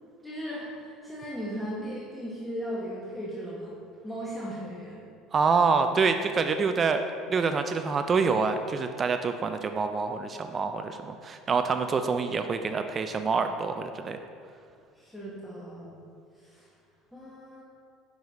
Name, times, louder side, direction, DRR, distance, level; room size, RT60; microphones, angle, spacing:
voice 1, 0.2-3.7 4.0-5.0 14.9-15.9 16.4-16.7 17.1-17.6, equal, ahead, -8 dB, 1.2 m, -37 dB
voice 2, 5.3-7.0 7.3-14.2, right 5 dB, 30° right, 8 dB, 0.3 m, -26 dB
6.5 x 4.8 x 4.1 m, 2.3 s
supercardioid pair, 100°, 0 cm